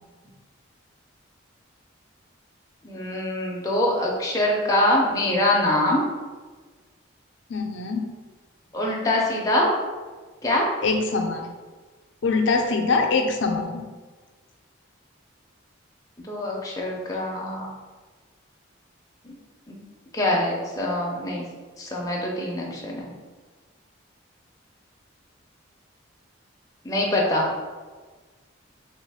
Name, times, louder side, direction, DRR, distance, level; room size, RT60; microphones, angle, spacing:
voice 1, 2.8-6.0 8.7-9.7 10.4-10.6 16.3-17.7 19.7-19.8 20.1-21.4 21.8-23.1 26.8-27.5, left 1 dB, 15° left, -3 dB, 0.5 m, -24 dB
voice 2, 7.5-8.0 10.8-11.5 12.2-13.9, left 3 dB, 65° left, 3 dB, 0.4 m, -23 dB
3.1 x 3.0 x 3.4 m, 1.4 s
head